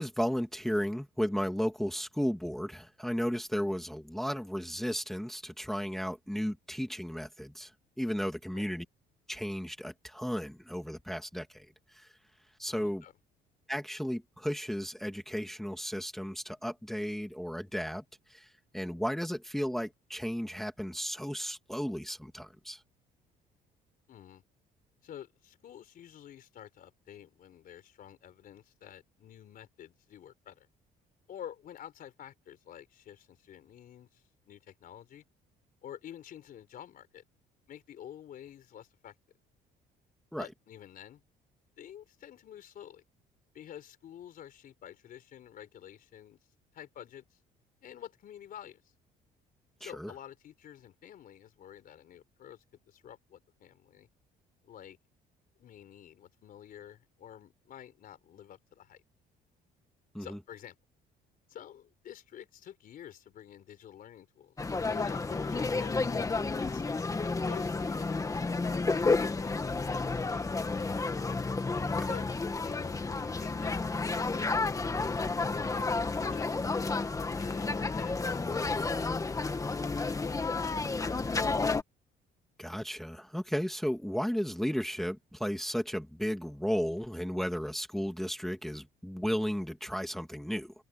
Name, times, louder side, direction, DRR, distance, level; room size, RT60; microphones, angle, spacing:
voice 1, 0.0-7.7 8.0-8.9 9.3-11.7 11.9-12.1 12.6-13.0 13.7-18.0 18.3-22.8 40.3-40.5 49.8-50.1 60.1-60.4 71.8-72.1 82.6-90.7, equal, ahead, 2.0 m, -34 dB
voice 2, 12.7-13.1 24.1-24.4 25.0-30.7 31.3-35.2 35.8-37.2 37.7-39.1 40.4-41.2 41.8-43.0 43.5-46.4 46.7-47.4 47.8-48.9 49.8-54.1 54.6-55.0 55.6-59.0 60.2-60.8 61.5-64.6 64.9-66.8 67.5-70.9 72.1-72.3 72.7-75.9 76.2-76.5 77.4-81.5, left 10 dB, 55° left, 4.1 m, -49 dB
sound 1, 64.6-81.8, left 3 dB, 20° left, 1.8 m, -31 dB
cardioid pair, 110°, 17 cm